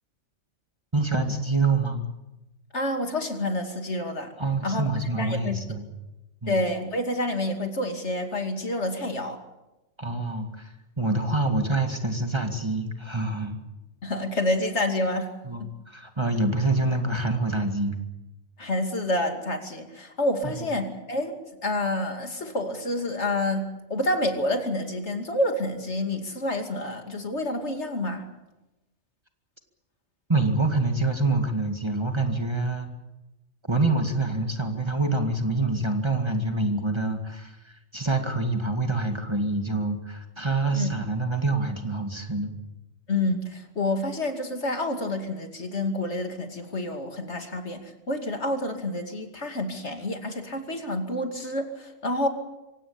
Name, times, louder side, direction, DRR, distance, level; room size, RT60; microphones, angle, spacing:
voice 1, 0.9-2.0 4.4-5.9 6.4-6.6 10.0-13.6 15.4-18.0 20.4-20.5 30.3-32.9 33.7-42.5, right 2 dB, 20° right, 5 dB, 2.1 m, -26 dB
voice 2, 2.7-4.3 4.6-4.8 5.2-5.6 6.5-9.4 14.0-15.3 15.6-15.7 18.6-21.3 21.6-28.3 40.7-40.9 43.1-52.3, left 1 dB, 65° left, 5 dB, 2.9 m, -28 dB
25.0 x 16.5 x 8.7 m, 1.0 s
omnidirectional pair, 1.2 m